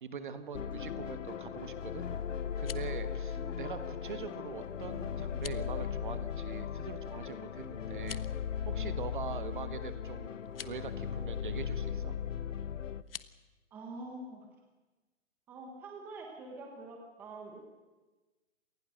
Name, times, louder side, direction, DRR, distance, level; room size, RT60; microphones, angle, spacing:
voice 1, 0.0-2.0 2.6-8.2 8.7-12.2, right 6 dB, 45° right, 11 dB, 1.5 m, -43 dB
sound 1, 0.5-13.0, left 8 dB, 90° left, 1.1 m, -37 dB
sound 2, 2.4-3.0 5.3-5.7 7.9-8.4 10.4-10.8 13.0-13.3, left 8 dB, 50° left, 0.9 m, -46 dB
voice 2, 13.7-14.5 15.5-17.6, right 2 dB, 5° right, 1 dB, 1.2 m, -45 dB
27.0 x 19.0 x 6.5 m, 1.2 s
hypercardioid pair, 175°, 36 cm